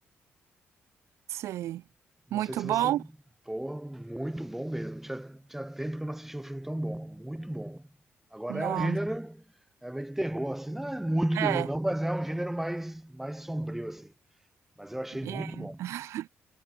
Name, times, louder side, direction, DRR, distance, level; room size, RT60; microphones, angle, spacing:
voice 1, 1.3-1.8 2.3-3.0 8.5-9.0 11.3-11.7 15.2-16.3, right 14 dB, 90° right, 0.8 m, -31 dB
voice 2, 2.3-3.0 3.5-7.9 8.3-9.4 9.8-14.1 14.8-15.9, right 1 dB, 5° right, 4.0 m, -33 dB
cardioid pair, 105°, 5 cm